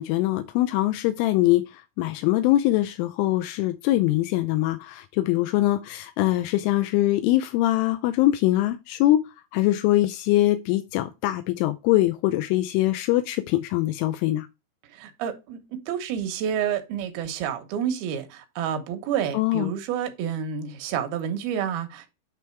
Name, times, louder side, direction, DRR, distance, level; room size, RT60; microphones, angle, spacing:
voice 1, 0.0-1.6 2.0-9.3 9.5-14.5 19.3-19.7, left 15 dB, 85° left, 3.1 m, -23 dB
voice 2, 14.9-22.1, right 8 dB, 75° right, 2.4 m, -29 dB
9.4 x 3.4 x 4.5 m
omnidirectional pair, 5.6 m